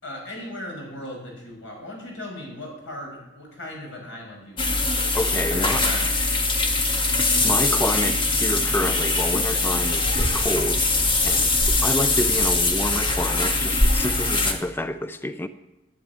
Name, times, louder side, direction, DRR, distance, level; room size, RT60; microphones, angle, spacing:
voice 1, 0.0-4.9 5.5-6.0, left 1 dB, 85° left, 5.9 m, -37 dB
sound 1, 4.6-14.5, left 2 dB, 25° left, 1.5 m, -22 dB
voice 2, 5.1-5.9 7.4-15.5, left 1 dB, 10° left, 0.4 m, -28 dB
11.0 x 9.6 x 9.4 m
head